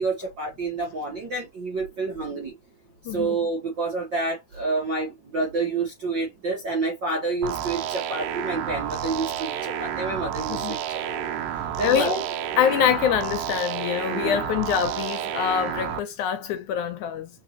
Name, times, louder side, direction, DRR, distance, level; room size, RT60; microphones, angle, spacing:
voice 1, 0.0-2.5 3.1-11.4 11.8-12.2 14.1-14.4, right 3 dB, 60° right, 1.2 m, -29 dB
voice 2, 3.1-3.4 10.5-10.8 11.8-12.2 12.6-17.3, left 9 dB, 80° left, 1.8 m, -25 dB
sound 1, 7.4-16.0, right 9 dB, 85° right, 2.3 m, -30 dB
4.5 x 3.9 x 2.9 m
omnidirectional pair, 3.8 m